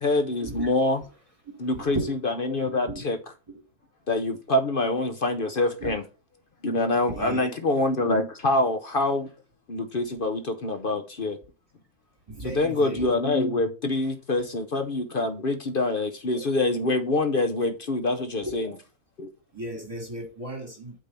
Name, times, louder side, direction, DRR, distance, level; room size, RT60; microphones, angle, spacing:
voice 1, 0.0-1.0 1.6-3.2 4.1-6.0 6.6-9.3 9.7-11.4 12.4-18.7 19.2-19.3, left 2 dB, 45° left, 0.8 m, -25 dB
voice 2, 1.8-2.1 2.9-3.0 5.8-5.9 7.1-7.5 12.3-13.1 18.4-18.5 19.5-20.9, right 2 dB, 20° right, 2.8 m, -34 dB
8.5 x 3.7 x 5.6 m
omnidirectional pair, 1.6 m